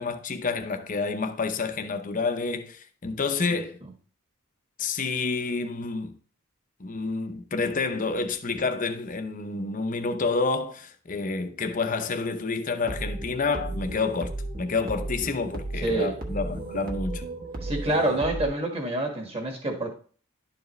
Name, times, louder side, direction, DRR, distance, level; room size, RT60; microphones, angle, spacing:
voice 1, 0.0-3.8 4.8-6.1 6.8-17.2, left 4 dB, 40° left, 0.7 m, -29 dB
sound 1, 12.8-18.5, right 2 dB, 45° right, 1.2 m, -34 dB
voice 2, 15.8-16.1 17.6-20.0, right 1 dB, 30° right, 1.6 m, -27 dB
11.5 x 4.7 x 3.2 m
head